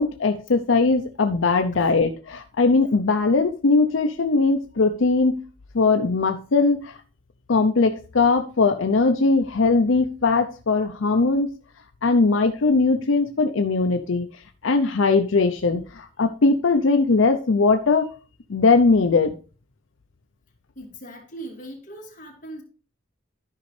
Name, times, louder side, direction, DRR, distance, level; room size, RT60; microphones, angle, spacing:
voice 1, 0.0-5.4 5.7-7.0 7.5-11.5 12.0-14.3 14.6-18.1 18.5-19.3, left 3 dB, 75° left, 0.6 m, -20 dB
voice 2, 20.7-22.6, right 1 dB, 40° left, 2.6 m, -39 dB
13.0 x 5.3 x 3.2 m
head